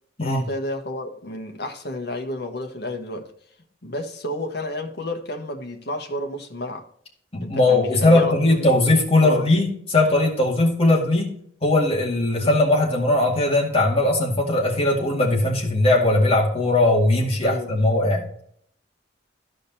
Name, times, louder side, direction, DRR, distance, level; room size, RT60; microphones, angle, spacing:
voice 1, 0.2-3.3 3.8-6.9 7.4-8.7 9.2-9.5 12.4-12.6 17.4-18.0, left 1 dB, 60° left, 1.3 m, -31 dB
voice 2, 7.3-11.3 11.6-18.3, left 2 dB, 30° left, 2.1 m, -19 dB
14.5 x 5.1 x 2.8 m
head